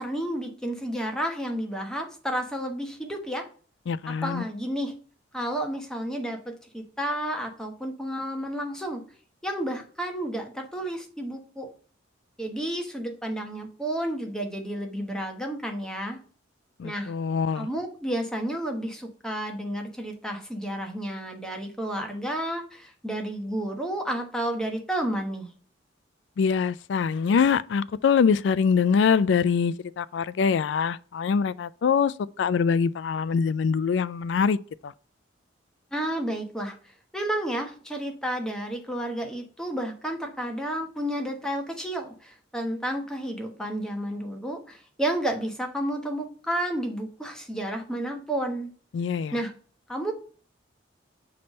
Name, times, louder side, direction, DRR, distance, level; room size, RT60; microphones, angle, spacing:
voice 1, 0.0-3.5 4.1-4.9 5.3-9.0 9.4-11.7 12.4-16.2 16.8-17.1 17.5-25.5 35.9-48.7 49.3-49.5 49.9-50.1, right 1 dB, 5° left, 1.1 m, -31 dB
voice 2, 3.9-4.4 16.8-17.7 26.4-34.6 34.8-34.9 48.9-49.3, left 6 dB, 65° left, 0.3 m, -24 dB
5.9 x 3.3 x 5.2 m
head